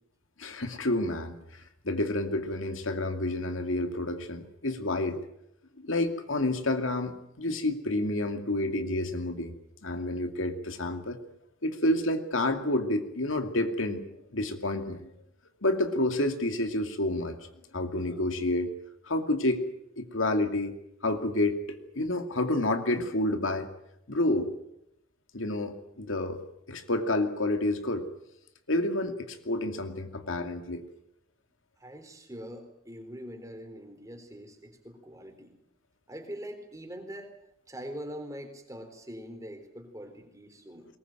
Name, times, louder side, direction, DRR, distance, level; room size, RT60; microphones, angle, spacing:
voice 1, 0.4-5.2 5.8-9.5 9.8-11.2 11.6-14.0 14.3-15.1 15.6-17.4 17.7-18.7 19.0-19.6 20.0-20.7 21.0-23.7 24.1-24.5 25.3-26.4 26.7-28.0 28.7-30.8, left 1 dB, 80° left, 7 dB, 2.5 m, -29 dB
voice 2, 31.8-35.6 36.1-37.3 37.7-40.9, equal, 15° right, 6 dB, 4.0 m, -43 dB
22.0 x 20.0 x 9.2 m, 0.79 s
head